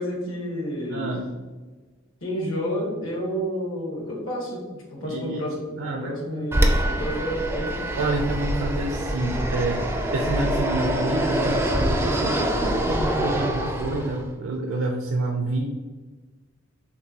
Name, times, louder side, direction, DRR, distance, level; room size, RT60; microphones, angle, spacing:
voice 1, 0.0-1.1 2.2-4.6 4.9-7.8, equal, 70° left, -1 dB, 1.3 m, -30 dB
voice 2, 0.9-1.3 5.0-5.5 5.8-6.6 8.0-15.7, right 2 dB, 65° right, 1 dB, 0.5 m, -28 dB
Fixed-wing aircraft airplane, 6.5-14.3, right 1 dB, 10° right, 0.4 m, -25 dB
6.6 x 2.6 x 2.8 m, 1.3 s
head